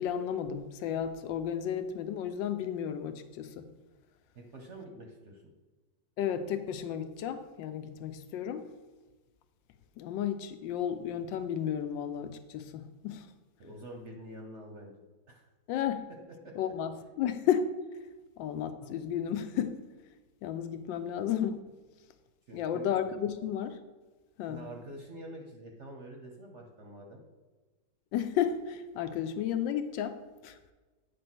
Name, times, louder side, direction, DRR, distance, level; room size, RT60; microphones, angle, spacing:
voice 1, 0.0-3.7 6.2-8.6 10.0-13.3 15.7-16.1 16.6-16.9 17.2-17.7 18.4-19.8 20.4-21.6 22.5-23.8 24.4-24.7 28.1-30.2 30.4-30.6, left 9 dB, 80° left, 9 dB, 1.3 m, -33 dB
voice 2, 4.3-5.4 13.6-14.9 15.3-15.5 16.1-16.6 22.5-22.9 24.5-27.2, right 1 dB, 50° right, 2 dB, 0.9 m, -46 dB
8.9 x 3.3 x 6.0 m, 1.2 s
omnidirectional pair, 2.0 m